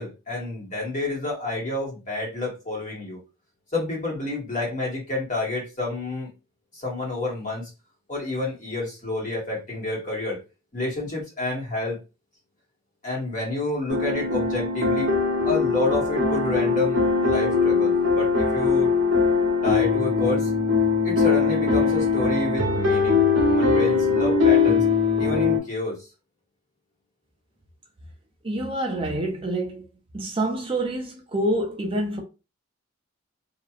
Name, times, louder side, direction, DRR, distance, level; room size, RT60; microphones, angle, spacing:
voice 1, 0.0-3.2 3.7-6.3 6.7-7.7 8.1-10.4 10.7-12.0 13.0-15.1 15.5-18.9 19.6-20.5 21.0-24.8 25.2-26.1, left 2 dB, 35° left, 1.2 m, -29 dB
sound 1, 13.9-25.6, left 4 dB, 70° right, 0.8 m, -21 dB
voice 2, 28.4-29.9 30.1-32.2, right 1 dB, 25° right, 0.4 m, -27 dB
2.9 x 2.4 x 2.3 m
head